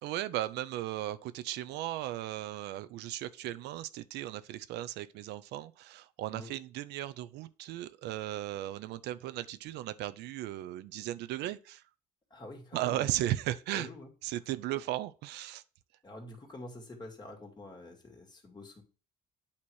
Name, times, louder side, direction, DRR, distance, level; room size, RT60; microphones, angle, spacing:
voice 1, 0.0-11.8 12.7-13.9 14.2-15.6, right 14 dB, 80° right, 0.5 m, -36 dB
voice 2, 12.3-13.1 13.7-14.1 16.0-18.8, left 2 dB, 25° left, 2.2 m, -47 dB
8.6 x 3.0 x 6.3 m
cardioid pair, 110°, 17 cm